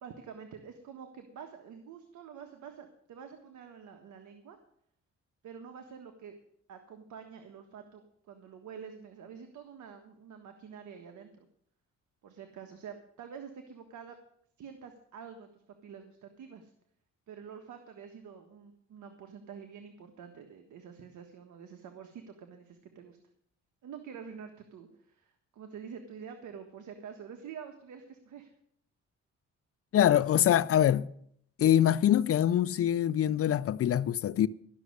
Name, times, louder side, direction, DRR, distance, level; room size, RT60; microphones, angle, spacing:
voice 1, 0.0-4.6 5.4-6.4 6.7-11.5 12.2-14.2 14.6-16.7 17.3-23.2 23.8-28.5, right 7 dB, 75° right, 1.5 m, -47 dB
voice 2, 29.9-31.1 31.6-34.5, left 11 dB, 50° left, 0.6 m, -24 dB
13.0 x 6.3 x 9.5 m
cardioid pair, 90°, 30 cm